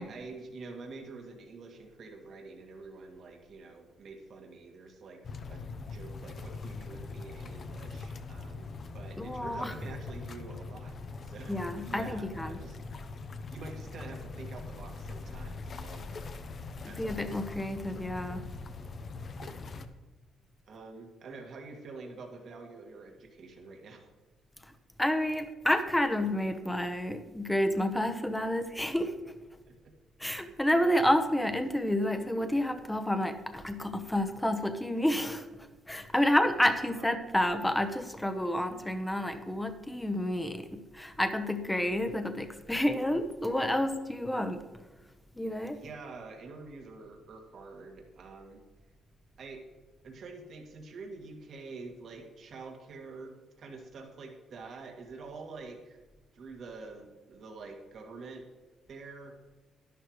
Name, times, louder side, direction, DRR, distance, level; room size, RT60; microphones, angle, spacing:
voice 1, 0.0-5.2 5.5-8.7 8.9-11.0 11.2-11.6 11.9-12.8 13.5-16.2 16.9-17.1 19.4-19.6 20.7-24.1 29.6-29.9 36.7-37.1 45.7-48.6 49.4-49.6 50.0-56.0 56.3-58.5 58.9-59.5, right 3 dB, 60° right, 2 dB, 1.9 m, -47 dB
sound 1, 5.2-19.9, left 3 dB, 50° left, 0.8 m, -42 dB
voice 2, 9.2-9.9 11.5-12.6 16.8-18.5 25.0-29.1 30.2-44.6 45.4-45.8, left 1 dB, 10° left, 8 dB, 1.0 m, -30 dB
11.0 x 11.0 x 3.1 m, 1.2 s
cardioid pair, 90°, 0 cm